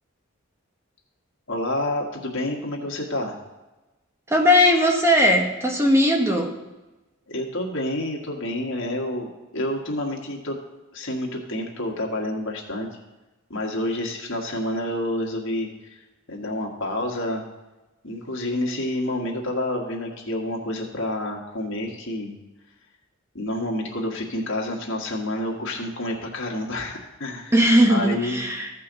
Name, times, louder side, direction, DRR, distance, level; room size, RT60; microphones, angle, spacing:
voice 1, 1.5-3.4 7.3-9.3 9.5-10.6 10.9-12.9 13.5-16.0 16.3-17.5 18.0-22.3 23.3-28.4, left 1 dB, 65° left, -1 dB, 1.7 m, -29 dB
voice 2, 4.3-6.5 27.5-28.7, equal, 15° right, 2 dB, 0.9 m, -18 dB
15.0 x 5.5 x 4.0 m, 1.1 s
head